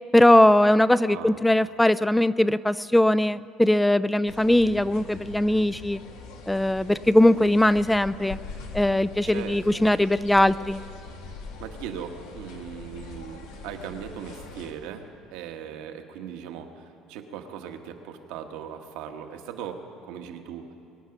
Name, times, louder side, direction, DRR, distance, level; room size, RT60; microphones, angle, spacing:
voice 1, 0.1-6.0 6.5-8.4 8.7-10.8, left 1 dB, 5° left, 16 dB, 0.3 m, -20 dB
voice 2, 1.1-1.4 9.2-9.9 11.6-15.0 15.3-20.6, right 8 dB, 80° right, 5 dB, 1.3 m, -39 dB
sound 1, 4.3-14.7, left 3 dB, 90° left, 1.9 m, -42 dB
23.5 x 9.4 x 5.9 m, 2.6 s
supercardioid pair, 100°, 0 cm